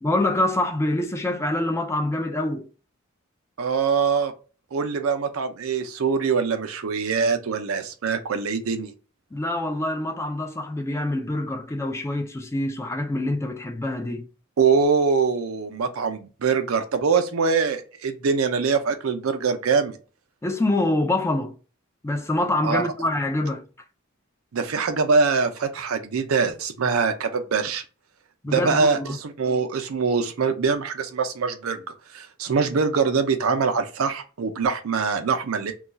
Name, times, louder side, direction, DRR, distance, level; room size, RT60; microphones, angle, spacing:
voice 1, 0.0-2.7 9.3-14.3 20.4-21.6 22.0-23.7 28.4-29.2, left 1 dB, 15° left, 0.3 m, -25 dB
voice 2, 3.6-4.3 4.7-8.9 14.6-20.0 22.6-22.8 24.5-27.8 28.5-31.8 32.1-35.7, right 5 dB, 90° right, 0.5 m, -23 dB
2.3 x 2.3 x 3.9 m
head